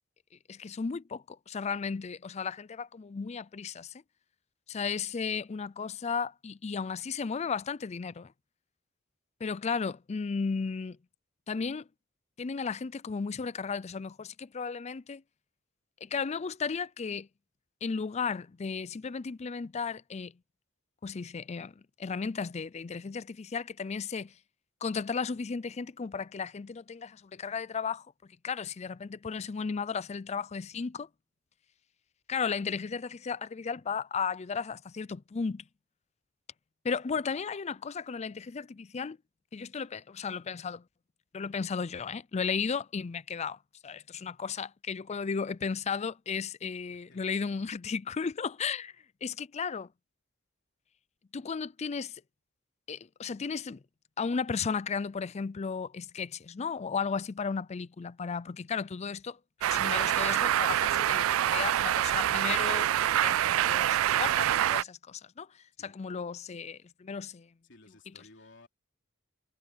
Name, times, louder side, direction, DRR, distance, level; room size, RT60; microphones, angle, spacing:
voice 1, 0.5-3.9 4.7-8.3 9.4-11.0 11.5-11.9 12.4-15.2 16.0-17.3 17.8-20.3 21.0-24.3 24.8-28.1 28.4-31.1 32.3-35.6 36.8-39.2 39.5-40.8 41.3-48.9 49.2-49.9 51.3-52.2 52.9-53.8 54.2-59.4 59.7-65.5 65.8-67.5, left 5 dB, 35° left, 0.4 m, -34 dB
voice 2, 46.9-47.3 65.8-66.0 67.6-68.7, left 2 dB, 60° left, 3.5 m, -57 dB
sound 1, 59.6-64.8, right 11 dB, 80° right, 0.3 m, -26 dB
head